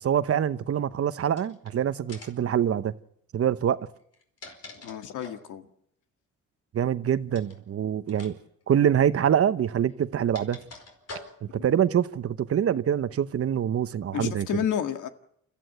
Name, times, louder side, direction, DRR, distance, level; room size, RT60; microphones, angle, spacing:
voice 1, 0.0-2.9 3.3-3.8 6.7-8.4 8.7-10.6 11.4-14.6, right 9 dB, 50° right, 1.0 m, -25 dB
sound 1, 1.3-1.7 2.1-2.5 4.0-5.5 7.3-7.6 8.1-8.3 8.6-8.7 9.7-11.6, left 2 dB, 55° left, 4.8 m, -45 dB
voice 2, 4.8-5.7 11.6-11.7 14.1-15.1, left 9 dB, 80° left, 1.8 m, -30 dB
29.0 x 14.0 x 7.9 m
cardioid pair, 90°, 30 cm